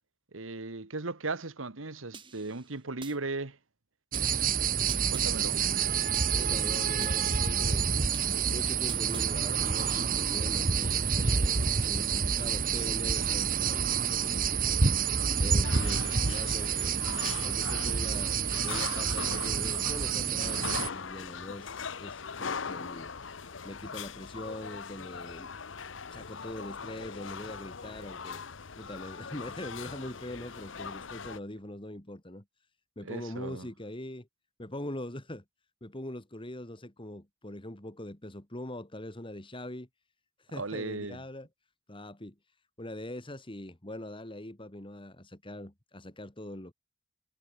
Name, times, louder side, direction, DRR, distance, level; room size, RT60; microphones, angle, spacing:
voice 1, 0.3-3.6 5.1-5.6 33.0-33.7 40.6-41.2, right 3 dB, 80° right, 1.6 m, -37 dB
sound 1, 2.1-3.2 4.1-5.3 6.1-7.2 8.1-9.3, right 5 dB, 25° right, 8.0 m, -49 dB
sound 2, 4.1-20.9, right 6 dB, 45° right, 1.1 m, -28 dB
voice 2, 6.3-8.1 8.5-14.8 15.4-17.1 17.4-23.1 23.6-25.5 26.1-28.4 28.8-32.4 33.0-34.3 34.6-35.4 35.8-39.9 40.4-41.5 41.9-42.4 42.8-46.7, left 1 dB, 25° left, 2.6 m, -42 dB
sound 3, 15.6-31.4, left 5 dB, 65° left, 1.0 m, -40 dB
head